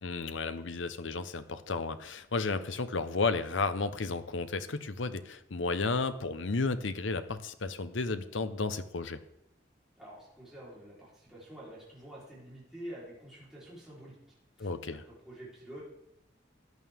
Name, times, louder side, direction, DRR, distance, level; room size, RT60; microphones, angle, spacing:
voice 1, 0.0-9.2 14.6-15.0, left 3 dB, 85° left, 12 dB, 0.8 m, -33 dB
voice 2, 10.0-14.1 14.6-15.8, right 1 dB, ahead, -8 dB, 3.9 m, -48 dB
14.5 x 9.4 x 3.6 m, 0.80 s
head